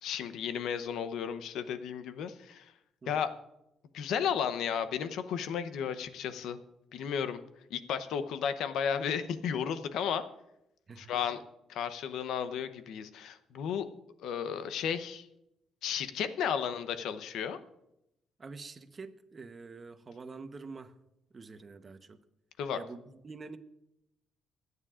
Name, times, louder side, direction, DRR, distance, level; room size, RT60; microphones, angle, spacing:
voice 1, 0.0-2.7 3.1-3.3 3.9-6.6 6.9-7.4 7.7-10.2 11.0-11.4 11.7-13.9 14.2-15.3 15.8-17.6 22.6-22.8, left 8 dB, 85° left, 0.8 m, -33 dB
voice 2, 10.9-11.4 18.4-20.9 21.3-22.2 22.7-23.6, right 4 dB, 35° right, 1.0 m, -46 dB
25.5 x 9.6 x 2.5 m
cardioid pair, 90°, 0 cm